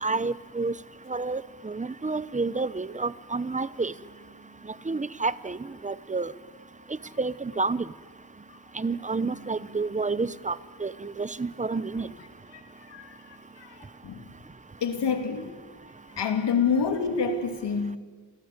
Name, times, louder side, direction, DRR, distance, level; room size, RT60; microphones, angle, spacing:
voice 1, 0.0-0.7 1.1-3.9 4.9-5.6 5.8-6.3 7.2-7.8 8.8-10.6 10.8-12.1, right 3 dB, 20° right, 16 dB, 0.8 m, -29 dB
voice 2, 14.8-15.5 16.2-18.0, left 5 dB, 80° left, 5 dB, 3.1 m, -27 dB
27.5 x 18.5 x 9.7 m, 1.5 s
wide cardioid pair, 100°, 41 cm